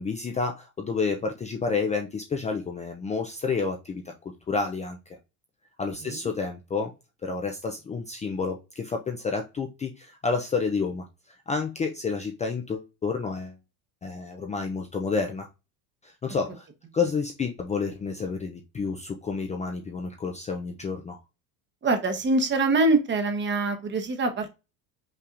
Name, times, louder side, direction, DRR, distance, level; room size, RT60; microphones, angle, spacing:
voice 1, 0.0-5.2 5.8-6.9 7.2-11.0 11.5-13.5 14.0-15.5 16.0-16.7 16.9-21.2, left 4 dB, 15° left, 3 dB, 0.5 m, -30 dB
voice 2, 21.8-24.5, right 2 dB, 25° right, 6 dB, 1.0 m, -24 dB
5.6 x 3.5 x 2.5 m, 0.27 s
supercardioid pair, 125°, 41 cm